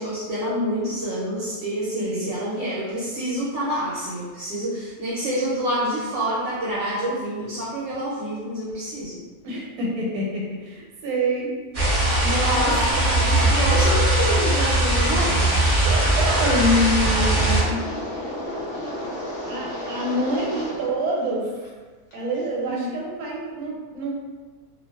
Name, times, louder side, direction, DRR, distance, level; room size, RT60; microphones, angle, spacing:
voice 1, 0.0-9.2 12.4-15.5 22.7-22.8, equal, 65° right, -7 dB, 0.8 m, -27 dB
voice 2, 9.4-11.5 12.2-13.4 15.8-17.8 19.4-21.5 22.1-24.1, equal, 85° right, -3 dB, 1.1 m, -26 dB
sound 1, 11.7-17.6, right 1 dB, 50° right, 0.4 m, -20 dB
Wind, 16.1-21.0 21.2-21.7 22.1-22.4, left 1 dB, 45° left, 0.5 m, -32 dB
2.4 x 2.3 x 2.2 m, 1.4 s
omnidirectional pair, 1.5 m